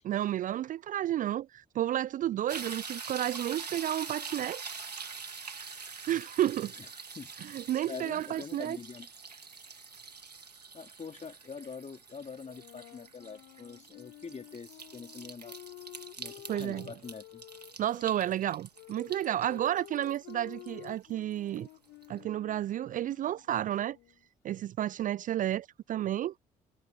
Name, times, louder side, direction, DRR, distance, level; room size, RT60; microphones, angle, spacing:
voice 1, 0.0-4.8 6.1-6.7 7.4-8.8 16.5-16.9 17.8-21.7 22.1-24.0 24.4-26.3, right 12 dB, 45° right, 0.4 m, -31 dB
sound 1, 2.5-21.6 22.0-22.1, right 4 dB, 90° right, 2.4 m, -45 dB
voice 2, 7.9-9.1 10.7-15.6 16.2-17.4, left 5 dB, 35° left, 4.1 m, -44 dB
sound 2, 12.4-18.0 18.7-24.3, left 19 dB, 65° left, 4.9 m, -51 dB
figure-of-eight pair, 45°, 20 cm